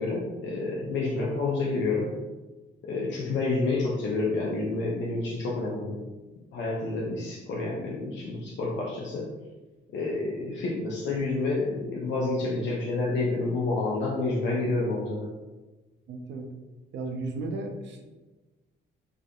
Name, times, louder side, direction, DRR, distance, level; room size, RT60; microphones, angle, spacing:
voice 1, 0.0-2.1 2.9-6.0 6.5-9.3 9.9-15.3, left 3 dB, 65° left, -4 dB, 0.5 m, -29 dB
voice 2, 16.1-16.5 16.9-18.1, right 2 dB, 65° right, 3 dB, 0.5 m, -35 dB
2.6 x 2.4 x 2.3 m, 1.2 s
cardioid pair, 90°, 20 cm